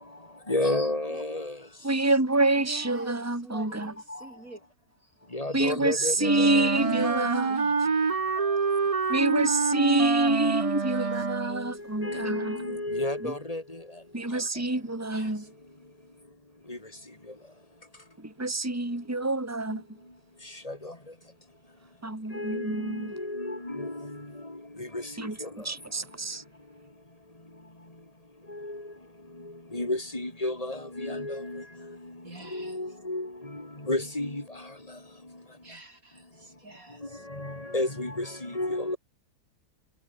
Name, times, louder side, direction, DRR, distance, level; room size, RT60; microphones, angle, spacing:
voice 1, 0.5-1.6 4.1-4.3 5.3-6.9 8.5-8.6 11.5-13.9 16.7-16.8 19.7-19.8 20.4-21.0 22.3-25.6 28.5-28.9 29.4-35.0 37.0-39.0, left 1 dB, 25° left, 4.3 m, -33 dB
voice 2, 1.8-3.9 5.5-7.5 9.1-12.6 13.2-13.3 14.1-15.5 18.2-20.0 22.0-23.1 25.2-25.4 25.6-26.4, right 2 dB, 10° right, 2.6 m, -27 dB
voice 3, 2.6-4.6 6.7-8.2 11.0-11.1 11.4-11.6 15.1-15.5 32.2-32.8 35.6-37.2, right 2 dB, 65° right, 5.5 m, -42 dB
Wind instrument woodwind instrument, 6.2-11.7, right 5 dB, 30° right, 0.8 m, -27 dB
omnidirectional pair, 1.6 m